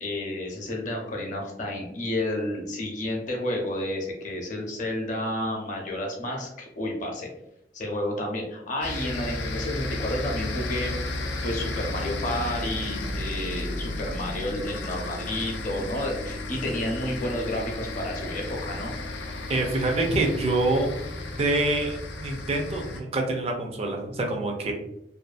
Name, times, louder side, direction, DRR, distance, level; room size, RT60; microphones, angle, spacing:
voice 1, 0.0-7.3 7.7-10.9 11.4-18.9, left 1 dB, 45° left, 1 dB, 0.6 m, -31 dB
sound 1, 8.8-23.0, left 2 dB, 85° left, 0.4 m, -33 dB
voice 2, 19.5-20.9 21.4-24.7, right 2 dB, 35° right, 2 dB, 0.4 m, -26 dB
2.5 x 2.3 x 2.4 m, 0.81 s
head